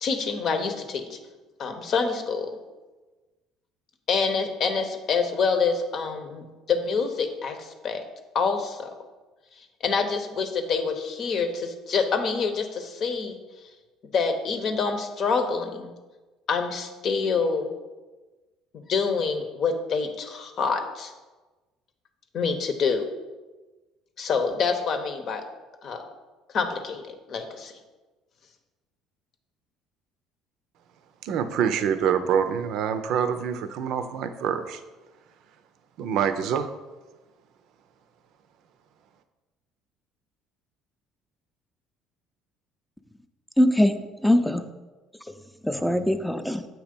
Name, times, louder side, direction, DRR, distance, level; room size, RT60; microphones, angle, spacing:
voice 1, 0.0-1.2 1.6-2.5 4.1-8.0 8.3-8.9 9.8-13.4 14.1-15.9 16.5-17.7 18.7-21.1 22.3-23.1 24.2-25.4 25.8-26.0 26.5-27.7, left 5 dB, 55° left, 6 dB, 0.9 m, -26 dB
voice 2, 31.2-34.8 36.0-36.7, right 8 dB, 70° right, 10 dB, 0.5 m, -26 dB
voice 3, 43.6-44.7 45.6-46.7, left 1 dB, 5° left, 8 dB, 0.5 m, -22 dB
7.7 x 3.0 x 5.2 m, 1.2 s
supercardioid pair, 75°, 0 cm